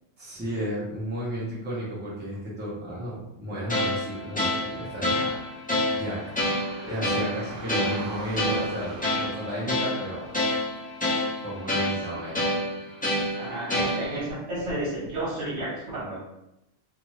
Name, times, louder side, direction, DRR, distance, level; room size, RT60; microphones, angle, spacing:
voice 1, 0.2-5.4 5.9-6.3 6.8-10.2 11.4-12.4, equal, 10° right, -8 dB, 0.8 m, -33 dB
sound 1, 3.7-14.3, left 1 dB, 15° left, 0.3 m, -28 dB
sound 2, 5.7-10.9, right 3 dB, 80° right, 1.0 m, -44 dB
voice 2, 13.3-16.2, right 1 dB, 65° right, -6 dB, 1.4 m, -32 dB
2.6 x 2.5 x 3.1 m, 0.88 s
omnidirectional pair, 1.3 m